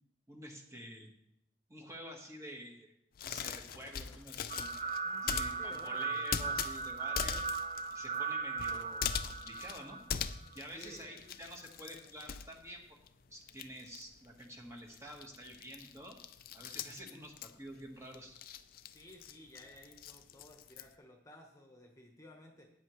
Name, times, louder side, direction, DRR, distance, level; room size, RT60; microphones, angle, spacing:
voice 1, 0.3-1.1 1.7-2.9 3.2-4.8 5.2-7.4 7.9-10.0 10.5-13.0 13.3-16.2 16.5-18.4, equal, 15° right, 1 dB, 1.4 m, -49 dB
sound 1, 3.1-13.1 13.4-20.9, left 8 dB, 50° left, 0.5 m, -42 dB
Gunshot gunfire, 3.6-5.4 8.6-8.8, left 5 dB, 90° left, 0.8 m, -58 dB
sound 2, 4.5-10.6, right 4 dB, 40° right, 0.4 m, -38 dB
voice 2, 5.0-6.2 10.7-11.2 18.9-22.7, left 1 dB, 20° left, 2 dB, 1.2 m, -55 dB
13.5 x 9.4 x 3.1 m, 0.78 s
head